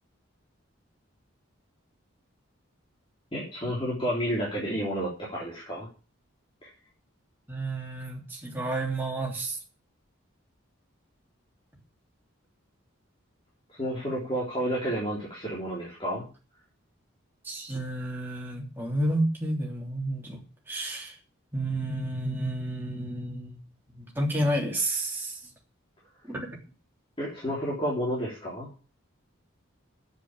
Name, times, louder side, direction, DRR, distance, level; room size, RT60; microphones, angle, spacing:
voice 1, 3.3-5.9 13.7-16.2 27.2-28.7, equal, 25° left, -6 dB, 3.6 m, -30 dB
voice 2, 7.5-9.6 17.4-20.4 20.7-21.2 21.5-23.6 23.9-25.4 26.3-26.6, right 1 dB, 10° right, -2 dB, 3.2 m, -30 dB
8.5 x 7.8 x 8.9 m, 0.35 s
head